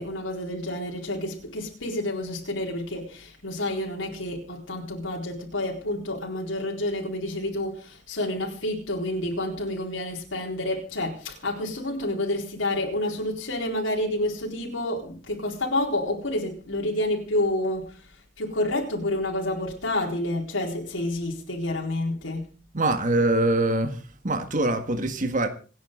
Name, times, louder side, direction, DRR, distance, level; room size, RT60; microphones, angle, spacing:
voice 1, 0.0-22.5, left 1 dB, 80° left, 4.2 m, -29 dB
voice 2, 22.7-24.0 24.2-25.5, right 2 dB, 40° right, 1.8 m, -23 dB
27.5 x 9.7 x 3.8 m
head